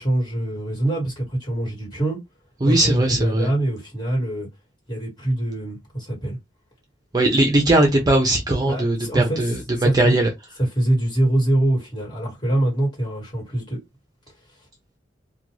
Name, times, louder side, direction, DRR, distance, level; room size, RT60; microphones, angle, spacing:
voice 1, 0.0-2.2 2.6-4.5 4.9-6.4 8.5-10.1 10.6-13.8, right 1 dB, 25° left, 1.6 m, -24 dB
voice 2, 2.6-3.5 7.1-9.6 9.9-10.3, right 1 dB, 20° right, 0.5 m, -19 dB
2.5 x 2.2 x 2.9 m
head